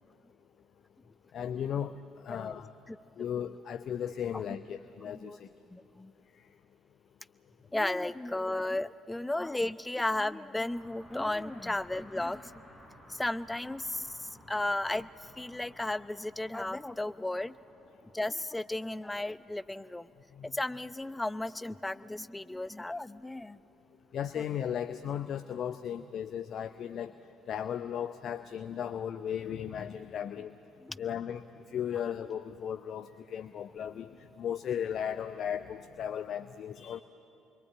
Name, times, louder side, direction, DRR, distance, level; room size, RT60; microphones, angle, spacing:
voice 1, 1.3-1.9 2.2-2.7 3.2-5.5 20.4-20.5 24.1-27.1 27.5-30.5 31.0-31.4 31.7-34.1 34.4-37.0, left 9 dB, 50° left, 11 dB, 0.7 m, -36 dB
voice 2, 5.7-6.1 7.7-12.6 13.1-15.1 15.4-17.6 18.1-20.1 20.4-23.6 30.8-31.0, left 2 dB, 10° left, 14 dB, 0.7 m, -34 dB
sound 1, 10.7-21.8, equal, 5° right, 6.1 m, -57 dB
28.0 x 22.5 x 8.9 m, 2.8 s
figure-of-eight pair, 45°, 0 cm